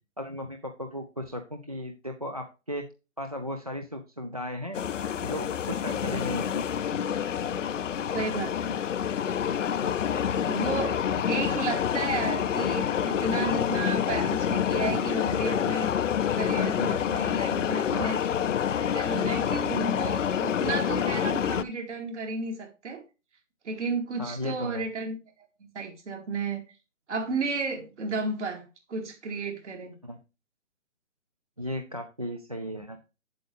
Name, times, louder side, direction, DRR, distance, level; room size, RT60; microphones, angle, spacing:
voice 1, 0.2-2.9 3.2-4.8 5.2-6.7 9.8-9.9 17.9-18.2 24.2-24.8 30.0-30.2 31.6-33.0, equal, 30° right, 0.4 m, -35 dB
sound 1, 4.7-21.6, left 8 dB, 70° left, 0.6 m, -27 dB
voice 2, 8.1-8.8 10.4-15.9 16.3-18.2 18.7-23.0 23.6-25.2 25.7-26.6 27.1-29.9, right 3 dB, 60° right, 2.6 m, -33 dB
7.9 x 7.7 x 3.3 m
hypercardioid pair, 160°, 39 cm